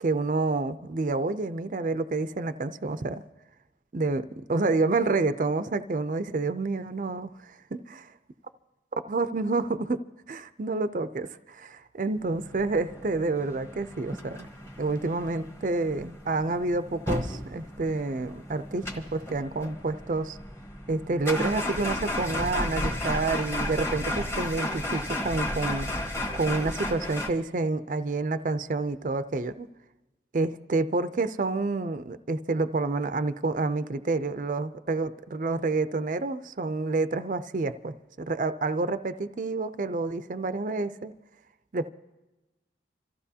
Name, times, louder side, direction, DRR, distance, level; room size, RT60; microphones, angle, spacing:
voice 1, 0.0-3.2 3.9-7.8 9.1-10.0 10.3-14.5 14.8-20.4 20.9-25.9 26.3-29.7 30.3-41.1 41.7-41.9, right 3 dB, 45° right, 0.5 m, -28 dB
sound 1, 12.3-27.3, left 1 dB, 15° left, 1.2 m, -34 dB
27.0 x 14.5 x 2.8 m
head